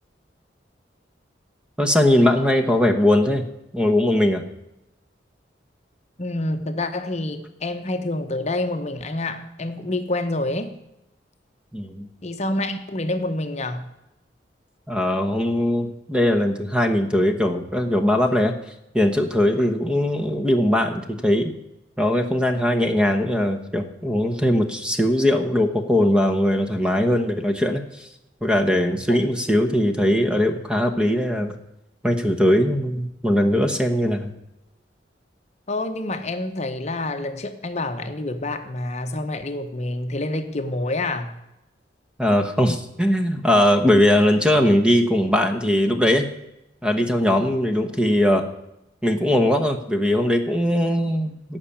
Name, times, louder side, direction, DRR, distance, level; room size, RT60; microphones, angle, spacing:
voice 1, 1.8-3.4 3.7-4.4 11.7-12.1 14.9-18.5 18.9-21.5 22.0-28.1 28.4-31.5 32.0-34.3 42.2-46.3 46.8-48.4 49.0-51.6, left 1 dB, 5° right, 6 dB, 1.1 m, -20 dB
voice 2, 6.2-10.7 12.2-13.9 29.1-29.2 35.7-41.4, left 2 dB, 40° left, 7 dB, 0.9 m, -27 dB
17.0 x 5.9 x 8.6 m, 0.89 s
head